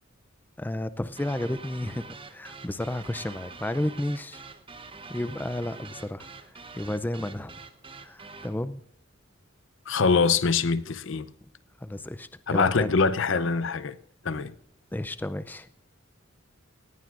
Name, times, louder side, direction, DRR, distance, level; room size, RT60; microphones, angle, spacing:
voice 1, 0.6-4.4 5.1-7.6 8.0-8.8 11.8-12.9 14.9-15.7, left 1 dB, 10° left, 0.4 m, -32 dB
sound 1, 1.2-8.6, right 4 dB, 25° right, 0.8 m, -45 dB
voice 2, 9.9-11.3 12.5-14.0 14.2-14.5, left 4 dB, 65° left, 0.7 m, -24 dB
19.0 x 15.0 x 2.5 m
head